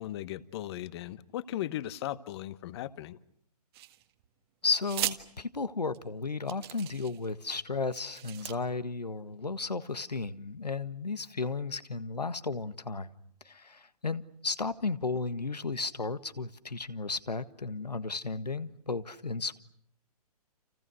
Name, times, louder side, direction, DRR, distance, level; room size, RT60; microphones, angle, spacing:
voice 1, 0.0-3.2, left 13 dB, 40° left, 15 dB, 1.2 m, -37 dB
sound 1, 3.7-4.3 4.8-5.2 5.9-6.0 6.5-7.3 7.9-8.5, right 15 dB, 40° right, 1.8 m, -37 dB
voice 2, 4.6-13.1 13.4-19.6, left 4 dB, 85° left, 12 dB, 1.6 m, -34 dB
30.0 x 28.0 x 6.3 m, 0.68 s
figure-of-eight pair, 125°, 20 cm